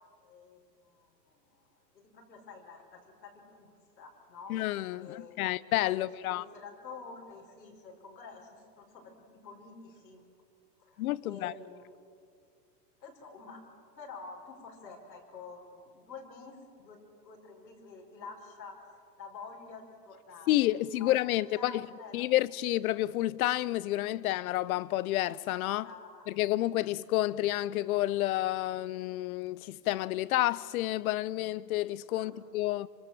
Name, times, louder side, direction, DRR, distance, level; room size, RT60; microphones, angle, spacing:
voice 1, 0.2-1.6 1.9-4.5 5.0-5.4 5.9-9.1 9.4-10.2 10.8-11.8 13.0-20.5 20.9-21.1 21.5-22.2 25.8-26.2 32.2-32.3, left 4 dB, 85° left, 5.5 m, -49 dB
voice 2, 4.5-6.4 11.0-11.5 20.5-21.9 22.1-25.9 26.3-32.9, left 15 dB, 60° left, 0.9 m, -30 dB
25.0 x 24.0 x 7.4 m
hypercardioid pair, 120°, 50 cm